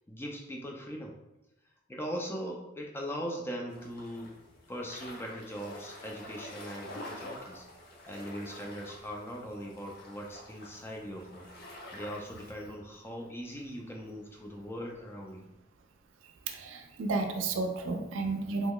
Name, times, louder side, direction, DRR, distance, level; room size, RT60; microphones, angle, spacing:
voice 1, 0.1-1.1 1.9-4.3 4.7-7.7 8.1-11.5 11.9-15.5, equal, 10° left, 0 dB, 0.3 m, -40 dB
sound 1, 3.7-12.5, left 1 dB, 50° left, 0.6 m, -48 dB
voice 2, 16.5-18.7, right 3 dB, 80° right, 5 dB, 0.4 m, -32 dB
3.0 x 2.3 x 3.5 m, 0.94 s
head